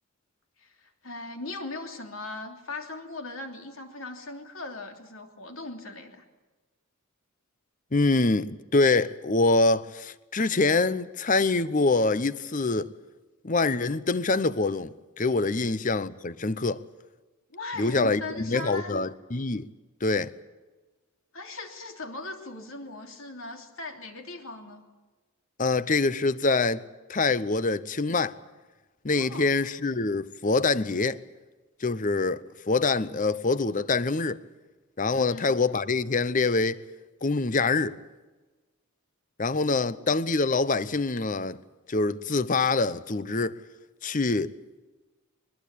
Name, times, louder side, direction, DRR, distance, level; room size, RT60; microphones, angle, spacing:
voice 1, 0.6-6.2 17.5-19.0 21.3-24.8 29.1-29.5 35.1-35.5 39.7-40.2, left 2 dB, 70° left, 3.1 m, -39 dB
voice 2, 7.9-12.9 13.4-16.8 17.8-19.7 20.0-20.3 25.6-26.8 27.1-28.4 29.0-31.2 31.8-34.4 35.0-36.8 37.2-38.0 39.4-41.6 41.9-43.6 44.0-44.5, left 3 dB, 35° left, 0.7 m, -25 dB
22.5 x 21.0 x 8.5 m
head